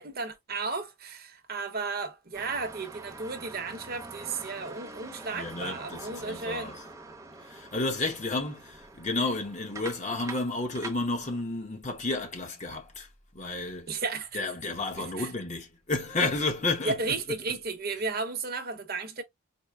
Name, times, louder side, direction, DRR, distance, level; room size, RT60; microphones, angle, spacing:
voice 1, 0.0-6.7 13.9-14.4 14.9-15.3 16.8-19.2, right 4 dB, 45° right, 0.8 m, -34 dB
sound 1, 2.3-11.4, right 3 dB, 15° right, 0.8 m, -45 dB
voice 2, 5.3-6.8 7.4-13.1 13.3-14.0 14.3-17.4, left 2 dB, 30° left, 0.9 m, -32 dB
4.4 x 2.0 x 3.4 m
head